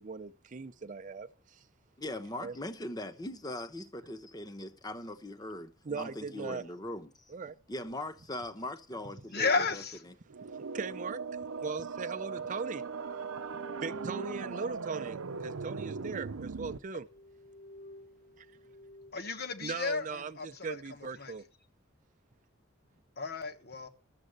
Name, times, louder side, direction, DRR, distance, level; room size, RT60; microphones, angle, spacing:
voice 1, 0.0-1.6 2.4-2.6 5.8-6.6 7.3-7.6 10.5-11.2 11.6-12.8 13.8-17.1 18.4-18.5 19.6-21.4, right 5 dB, 40° right, 0.5 m, -39 dB
voice 2, 2.0-7.1 7.7-10.1, left 1 dB, 20° left, 0.9 m, -40 dB
voice 3, 9.3-10.0 19.1-21.3 23.2-23.9, left 4 dB, 50° left, 1.3 m, -33 dB
sound 1, 10.3-16.8, right 5 dB, 80° right, 0.6 m, -39 dB
sound 2, 12.3-16.0 16.5-16.6 17.0-19.1, right 3 dB, 75° left, 3.2 m, -49 dB
12.0 x 7.6 x 6.5 m
head